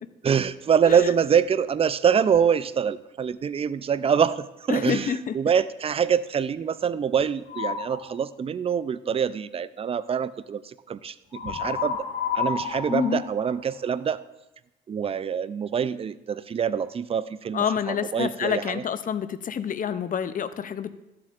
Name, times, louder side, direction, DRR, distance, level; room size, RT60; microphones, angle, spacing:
voice 1, 0.2-12.1 12.3-14.2 14.9-18.8, right 7 dB, 30° right, 15 dB, 0.4 m, -25 dB
voice 2, 4.7-5.4 12.9-13.2 17.5-20.9, left 7 dB, 45° left, 13 dB, 0.5 m, -27 dB
sound 1, 7.5-8.0 11.3-14.1, left 6 dB, 75° left, 2.1 m, -30 dB
13.0 x 7.6 x 2.5 m, 0.95 s
cardioid pair, 90°, 20 cm